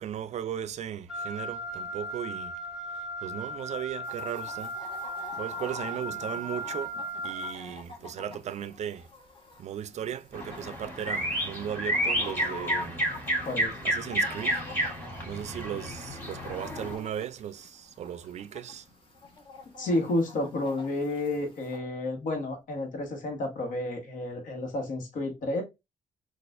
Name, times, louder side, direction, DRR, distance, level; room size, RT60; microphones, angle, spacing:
voice 1, 0.0-2.6 2.9-4.8 5.4-7.0 7.2-9.1 9.6-13.0 13.8-14.6 15.2-18.9, right 10 dB, 55° right, 0.4 m, -37 dB
Wind instrument woodwind instrument, 1.1-7.5, right 1 dB, 5° right, 0.8 m, -37 dB
Chicken rooster, 4.0-21.8, left 3 dB, 40° left, 1.1 m, -46 dB
sound 1, 10.3-16.9, equal, 15° left, 1.8 m, -31 dB
voice 2, 19.8-25.6, left 2 dB, 70° left, 1.2 m, -31 dB
4.0 x 2.4 x 2.4 m
cardioid pair, 75°, 14 cm